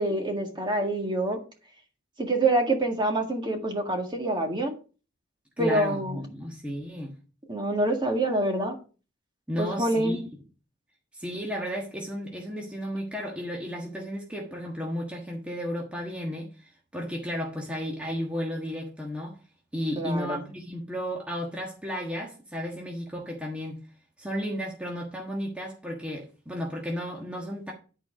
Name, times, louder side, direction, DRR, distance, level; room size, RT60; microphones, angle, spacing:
voice 1, 0.0-1.4 2.2-4.7 5.6-6.2 7.5-8.8 9.6-10.2 20.0-20.4, right 2 dB, 25° right, 1.8 m, -26 dB
voice 2, 5.6-7.1 9.5-10.2 11.1-19.4 19.7-23.8 24.2-27.7, equal, 5° right, 1.4 m, -33 dB
11.5 x 4.6 x 5.1 m
head